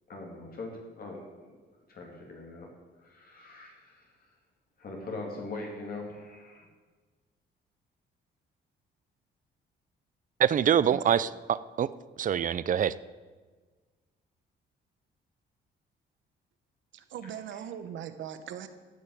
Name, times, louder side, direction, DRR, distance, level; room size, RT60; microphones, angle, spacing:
voice 1, 0.1-1.5 1.9-2.7 3.0-4.3 4.8-6.7, left 2 dB, 50° left, -1 dB, 2.6 m, -41 dB
voice 2, 10.4-11.9 12.2-12.9, right 9 dB, 40° right, 17 dB, 0.5 m, -25 dB
voice 3, 16.9-18.7, right 9 dB, 75° right, 10 dB, 1.0 m, -40 dB
12.5 x 5.6 x 8.4 m, 1.4 s
cardioid pair, 90°, 20 cm